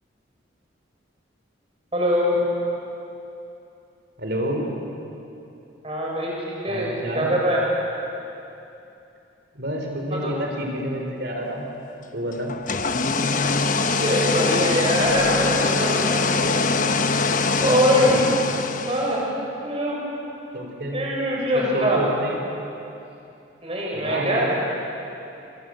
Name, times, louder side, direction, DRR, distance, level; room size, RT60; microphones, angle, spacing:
voice 1, 1.9-2.4 5.8-7.6 10.1-10.3 13.6-16.3 17.6-18.2 18.9-19.2 19.6-20.0 20.9-22.0 23.6-24.5, equal, 30° right, -3 dB, 6.3 m, -23 dB
voice 2, 4.2-4.7 6.7-7.3 9.5-11.7 12.1-12.5 17.9-18.1 20.5-21.0 21.7-22.4 23.9-24.5, equal, 55° right, 1 dB, 4.2 m, -28 dB
sound 1, 12.5-19.3, left 4 dB, 40° left, 1.1 m, -23 dB
27.5 x 25.5 x 7.9 m, 2.8 s
head